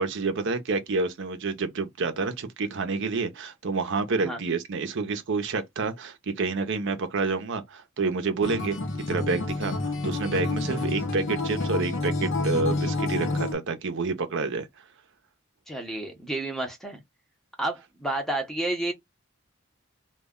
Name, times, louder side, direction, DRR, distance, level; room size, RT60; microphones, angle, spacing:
voice 1, 0.0-8.8 9.1-14.7, right 4 dB, 60° right, 0.6 m, -28 dB
Acoustic guitar, 8.4-13.5, left 2 dB, 60° left, 0.6 m, -29 dB
voice 2, 15.7-17.0 17.6-18.9, right 2 dB, ahead, 0.6 m, -30 dB
2.2 x 2.1 x 3.5 m
head